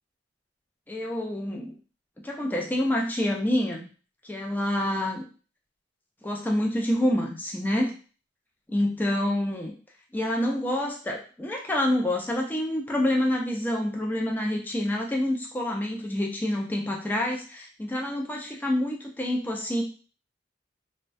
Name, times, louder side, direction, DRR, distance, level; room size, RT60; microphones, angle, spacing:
voice 1, 0.9-1.7 2.2-3.8 4.2-5.3 6.2-7.9 8.7-9.7 10.1-19.8, left 1 dB, 10° left, 0 dB, 0.3 m, -27 dB
2.3 x 2.1 x 2.5 m, 0.37 s
head